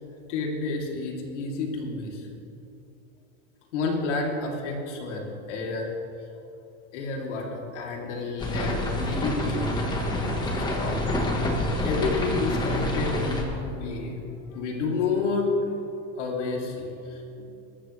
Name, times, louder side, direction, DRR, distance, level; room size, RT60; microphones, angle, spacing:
voice 1, 0.3-2.3 3.7-5.9 6.2-6.3 6.9-11.1 11.8-14.2 14.5-15.5 16.2-17.2, left 3 dB, 85° left, -1 dB, 3.1 m, -30 dB
sound 1, 8.4-13.4, left 1 dB, 10° left, 1.4 m, -27 dB
21.5 x 13.5 x 3.3 m, 2.8 s
supercardioid pair, 170°, 35 cm